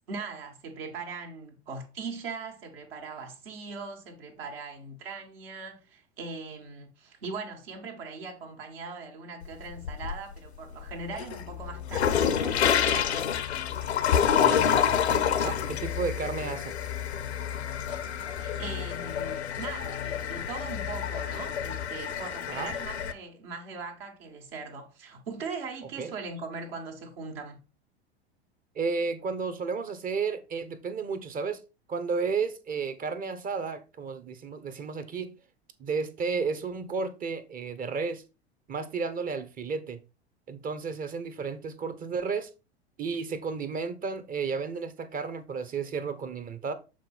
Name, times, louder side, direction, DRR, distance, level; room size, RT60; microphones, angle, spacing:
voice 1, 0.1-13.1 18.4-27.6, right 4 dB, 60° right, 1.7 m, -40 dB
sound 1, 9.4-10.4 10.8-23.1, left 8 dB, 75° left, 0.8 m, -28 dB
sound 2, 10.5-21.9, left 11 dB, 45° left, 0.5 m, -39 dB
voice 2, 14.2-16.8 22.5-22.7 26.0-26.2 28.7-31.6 31.9-35.3 35.8-38.2 38.7-40.0 40.5-42.5 43.0-46.7, right 5 dB, 25° right, 0.9 m, -33 dB
7.5 x 3.9 x 4.3 m
figure-of-eight pair, 85°, 33 cm